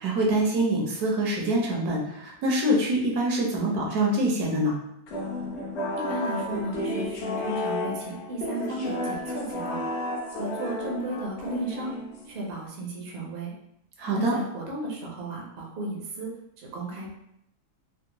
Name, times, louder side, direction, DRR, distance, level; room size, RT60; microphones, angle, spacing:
voice 1, 0.0-4.7 14.0-14.3, right 1 dB, 75° right, -2 dB, 1.2 m, -25 dB
sound 1, 5.1-12.5, left 1 dB, 65° left, 0.7 m, -32 dB
voice 2, 6.0-9.8 10.4-11.9 12.3-13.5 14.1-17.1, right 1 dB, 55° right, -2 dB, 0.7 m, -34 dB
3.5 x 2.1 x 2.8 m, 0.79 s
omnidirectional pair, 1.7 m